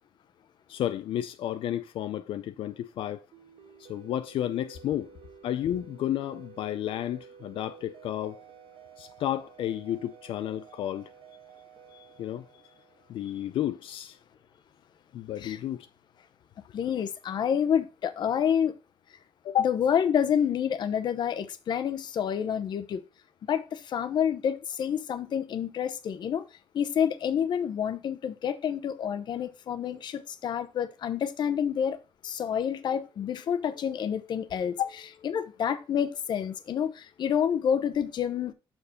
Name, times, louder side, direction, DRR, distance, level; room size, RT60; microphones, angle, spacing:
voice 1, 0.7-3.2 3.8-5.1 5.4-8.4 9.0-11.1 12.2-12.5 13.1-14.2 15.1-15.9 19.4-19.7 34.8-34.9, left 11 dB, 90° left, 0.5 m, -31 dB
sound 1, 3.3-13.6, right 7 dB, 85° right, 1.2 m, -52 dB
voice 2, 16.7-18.7 19.6-23.0 23.5-26.4 26.7-32.0 32.2-34.8 35.2-38.5, left 8 dB, 55° left, 0.8 m, -28 dB
6.7 x 4.5 x 5.5 m
wide cardioid pair, 175°, 9 cm